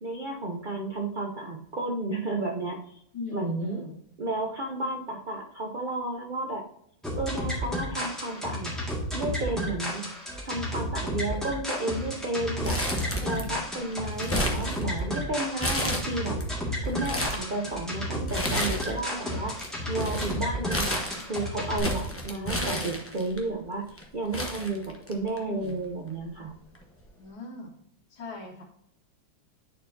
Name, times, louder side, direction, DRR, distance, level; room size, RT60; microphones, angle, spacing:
voice 1, 0.0-3.0 3.3-3.8 4.2-6.6 7.2-8.7 9.1-10.0 10.4-12.8 13.2-16.4 16.8-19.6 19.9-21.0 21.3-26.5, right 2 dB, 85° right, 1 dB, 0.4 m, -32 dB
voice 2, 3.1-4.0 12.8-13.6 25.4-25.7 27.2-27.7 28.1-28.6, left 4 dB, 75° left, -2 dB, 2.2 m, -40 dB
sound 1, 7.0-21.8, equal, ahead, 1.7 m, -32 dB
Crumpling crinkling, 12.6-13.6 13.9-15.2 15.6-16.4 16.8-17.5 18.3-19.1 19.3-23.4 24.0-24.1 24.3-25.4 25.7-25.8 26.7-27.0, equal, 15° left, 0.4 m, -31 dB
9.9 x 4.4 x 2.7 m, 0.69 s
omnidirectional pair, 2.2 m